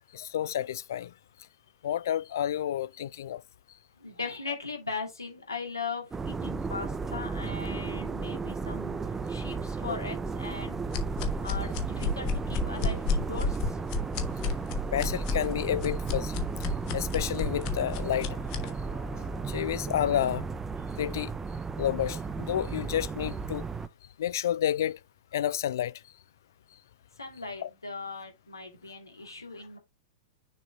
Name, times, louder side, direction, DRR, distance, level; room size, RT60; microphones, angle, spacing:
voice 1, 0.1-1.1 1.8-3.4 9.9-10.0 14.9-16.4 16.9-20.5 21.0-21.3 21.8-23.6 24.2-25.0 25.3-25.9 27.6-27.7, left 11 dB, 60° left, 0.4 m, -30 dB
voice 2, 4.0-9.0 9.3-10.8 11.4-13.8 27.2-29.8, left 4 dB, 80° left, 2.5 m, -39 dB
sound 1, 6.1-23.9, right 4 dB, 15° right, 0.5 m, -34 dB
sound 2, 10.9-18.7, left 4 dB, 40° left, 1.3 m, -31 dB
6.5 x 4.1 x 3.5 m
figure-of-eight pair, 100°, 2 cm